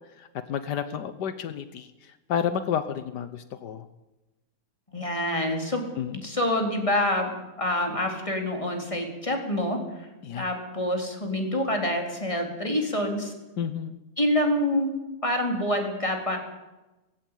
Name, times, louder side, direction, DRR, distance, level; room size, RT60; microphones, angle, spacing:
voice 1, 0.2-1.9 2.3-3.9 6.0-6.2 10.2-10.5 13.6-13.9, left 8 dB, 80° left, 12 dB, 1.5 m, -30 dB
voice 2, 4.9-5.8 6.1-10.1 10.4-13.3 14.2-14.9 15.2-16.4, left 1 dB, 20° left, 3 dB, 3.8 m, -27 dB
18.5 x 16.0 x 9.1 m, 1.0 s
omnidirectional pair, 1.8 m